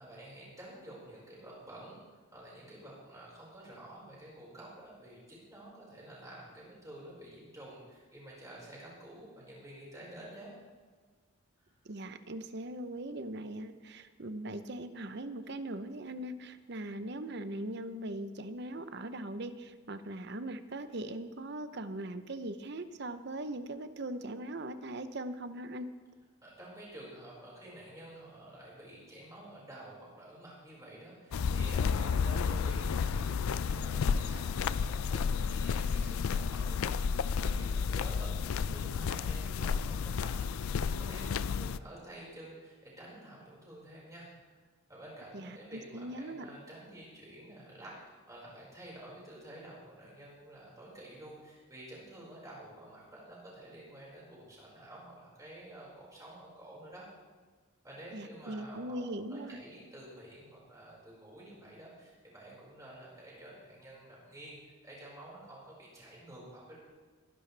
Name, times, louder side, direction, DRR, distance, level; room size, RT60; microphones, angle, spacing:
voice 1, 0.0-2.0 2.3-10.5 26.4-44.6 44.9-57.0 57.8-64.6 64.8-66.8, right 1 dB, 15° right, -5 dB, 5.1 m, -50 dB
voice 2, 11.8-25.9 45.3-46.5 58.1-59.6, right 1 dB, 55° right, 11 dB, 0.7 m, -40 dB
sound 1, 31.3-41.8, left 6 dB, 85° left, 0.4 m, -31 dB
21.5 x 11.0 x 3.4 m, 1.4 s
head